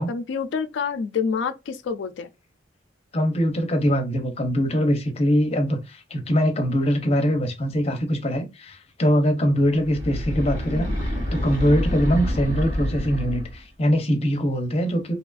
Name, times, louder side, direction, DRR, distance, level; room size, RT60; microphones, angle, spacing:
voice 1, 0.1-2.3 10.7-11.0, left 6 dB, 65° left, 0.3 m, -28 dB
voice 2, 3.1-15.1, equal, 35° left, 0.6 m, -22 dB
sound 1, 9.7-13.7, equal, 85° right, 1.4 m, -27 dB
2.8 x 2.4 x 2.3 m
head